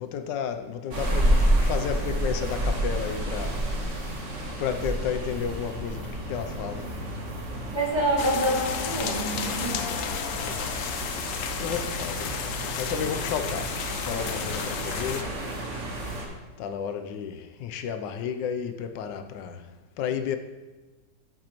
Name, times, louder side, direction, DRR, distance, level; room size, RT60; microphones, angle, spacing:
voice 1, 0.0-3.6 4.6-6.9 10.4-10.8 11.6-15.3 16.6-19.6 20.0-20.4, left 7 dB, 90° left, 1.3 m, -32 dB
sound 1, 0.9-16.3, right 1 dB, 45° right, 1.5 m, -30 dB
voice 2, 7.7-10.0, right 1 dB, 15° right, 1.6 m, -27 dB
sound 2, 8.2-15.2, left 7 dB, 65° left, 0.8 m, -33 dB
8.9 x 8.4 x 3.0 m
omnidirectional pair, 1.9 m